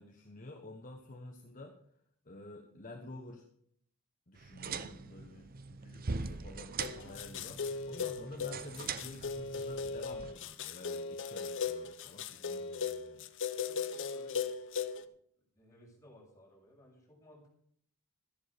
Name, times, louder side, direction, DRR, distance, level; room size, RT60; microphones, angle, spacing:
voice 1, 0.0-1.8 2.2-3.5 4.3-13.3, left 1 dB, 35° left, 3 dB, 1.2 m, -50 dB
sound 1, 4.4-10.3, right 4 dB, 40° right, 0.7 m, -42 dB
sound 2, 6.8-15.0, left 6 dB, 55° left, 0.8 m, -38 dB
voice 2, 13.6-14.5 14.9-15.0 15.5-17.6, equal, 15° left, -5 dB, 6.8 m, -58 dB
13.5 x 11.0 x 5.2 m, 0.66 s
head